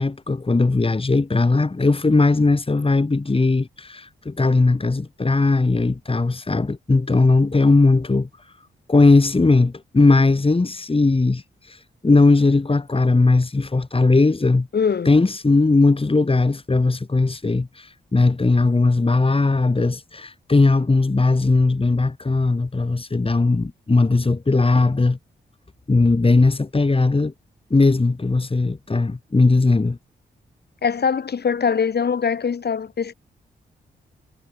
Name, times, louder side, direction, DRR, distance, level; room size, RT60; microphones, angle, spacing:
voice 1, 0.0-8.3 8.9-11.4 11.7-11.8 12.0-14.7 15.1-25.2 25.9-27.3 27.7-30.0, left 3 dB, 30° left, 4.1 m, -18 dB
voice 2, 14.7-15.1 30.8-33.1, left 6 dB, 60° left, 4.8 m, -22 dB
supercardioid pair, 55°, 19 cm